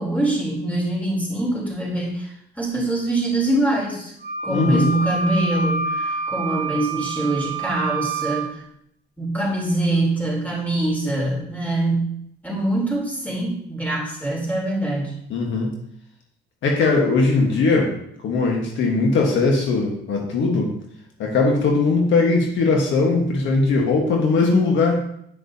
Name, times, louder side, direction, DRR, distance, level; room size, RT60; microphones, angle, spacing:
voice 1, 0.0-4.1 4.4-8.6 9.2-12.1 12.4-15.2, right 2 dB, 10° left, -3 dB, 3.4 m, -24 dB
Wind instrument woodwind instrument, 4.2-8.5, right 3 dB, 55° right, 1.3 m, -27 dB
voice 2, 4.5-4.9 15.3-15.7 16.6-17.9 18.2-20.7 21.2-25.1, left 3 dB, 75° left, 0 dB, 1.4 m, -19 dB
9.1 x 6.5 x 2.8 m, 0.72 s
cardioid pair, 90°, 20 cm